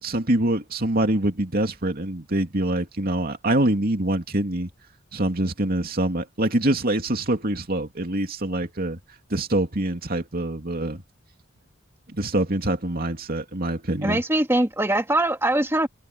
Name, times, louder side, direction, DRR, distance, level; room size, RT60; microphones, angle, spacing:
voice 1, 0.0-4.7 5.1-9.0 9.3-11.0 12.1-14.2, right 1 dB, 50° right, 2.7 m, -25 dB
voice 2, 14.0-15.9, right 1 dB, 10° right, 2.3 m, -22 dB
head